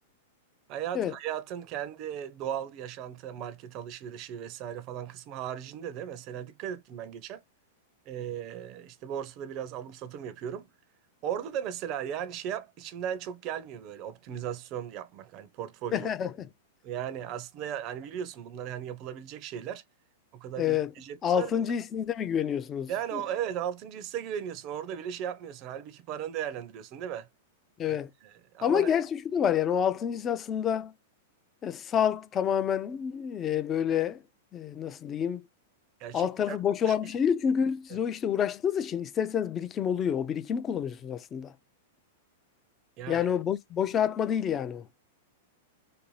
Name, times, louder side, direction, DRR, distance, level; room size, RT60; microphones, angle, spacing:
voice 1, 0.7-7.4 8.1-10.7 11.2-16.1 16.8-19.8 20.3-21.5 22.9-27.3 27.9-28.9 36.0-36.6 36.9-37.0 37.9-38.0 43.0-43.3, right 9 dB, 40° right, 0.4 m, -37 dB
voice 2, 15.9-16.5 20.6-20.9 21.2-23.2 27.8-28.1 28.6-30.9 31.6-34.2 34.5-35.4 36.1-41.5 43.1-44.8, left 8 dB, 25° left, 0.3 m, -28 dB
2.6 x 2.2 x 3.0 m
hypercardioid pair, 125°, 0 cm